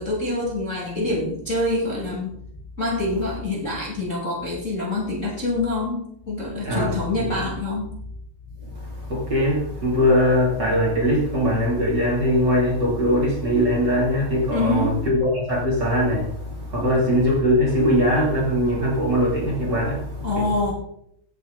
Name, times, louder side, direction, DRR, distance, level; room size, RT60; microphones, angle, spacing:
voice 1, 0.0-2.4 2.8-7.9 14.5-15.0 16.8-16.9 20.2-20.7, left 2 dB, 25° left, 2.5 m, -26 dB
voice 2, 6.6-7.4 9.0-20.5, equal, 30° right, 3.5 m, -21 dB
17.0 x 8.3 x 4.0 m
omnidirectional pair, 4.2 m